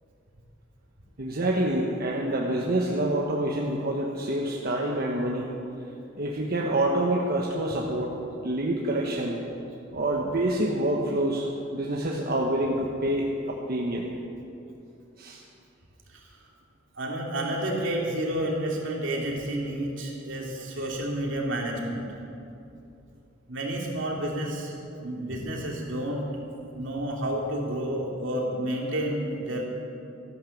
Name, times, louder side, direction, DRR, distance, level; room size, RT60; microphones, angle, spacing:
voice 1, 1.2-5.5 6.2-8.1 8.4-9.4 9.9-11.5 11.7-14.1 15.2-15.4, right 1 dB, 50° right, -1 dB, 1.2 m, -27 dB
voice 2, 17.0-22.0 23.5-24.7 25.0-26.3 26.7-29.6, right 1 dB, 75° right, -1 dB, 2.7 m, -30 dB
14.0 x 11.0 x 7.1 m, 2.7 s
head